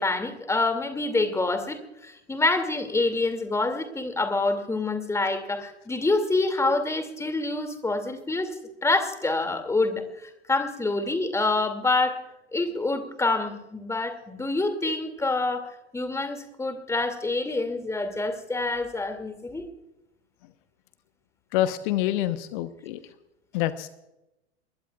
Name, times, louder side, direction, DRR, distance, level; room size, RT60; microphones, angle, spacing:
voice 1, 0.0-8.6 8.8-12.2 12.5-19.7, left 2 dB, 10° left, 8 dB, 2.5 m, -27 dB
voice 2, 21.5-23.0 23.5-23.9, left 13 dB, 50° left, 12 dB, 1.0 m, -26 dB
27.0 x 22.0 x 2.4 m, 0.93 s
figure-of-eight pair, 85°, 32 cm